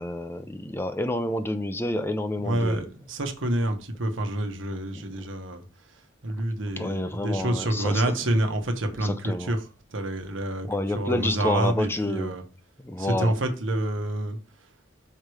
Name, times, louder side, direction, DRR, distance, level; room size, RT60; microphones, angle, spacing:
voice 1, 0.0-2.9 5.0-5.2 6.8-8.0 9.0-9.5 10.6-12.4 12.8-13.3, left 1 dB, 10° left, 0.5 m, -29 dB
voice 2, 2.4-5.6 6.2-9.6 9.9-10.7 10.9-12.4 13.0-14.4, right 1 dB, 80° right, 1.2 m, -27 dB
5.6 x 4.7 x 4.9 m
head